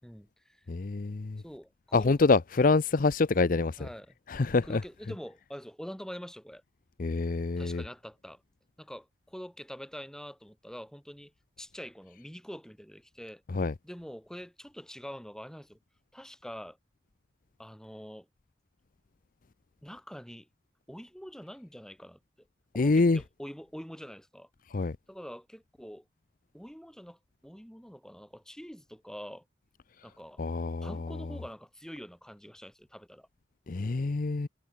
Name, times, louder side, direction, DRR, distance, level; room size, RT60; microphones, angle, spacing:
voice 1, 0.0-0.7 1.4-2.2 3.8-4.1 4.6-6.6 7.6-8.4 8.8-11.3 11.6-13.4 13.8-15.8 16.1-16.8 17.6-18.3 19.8-20.5 20.9-22.2 22.7-24.5 25.1-26.1 26.5-29.4 30.0-30.4 30.8-33.3, equal, 5° left, 5.4 m, -45 dB
voice 2, 0.7-1.4 1.9-3.8 4.3-4.8 7.0-7.8 13.5-13.7 22.8-23.2 24.7-25.0 30.4-31.2 33.7-34.5, left 3 dB, 50° left, 0.6 m, -26 dB
head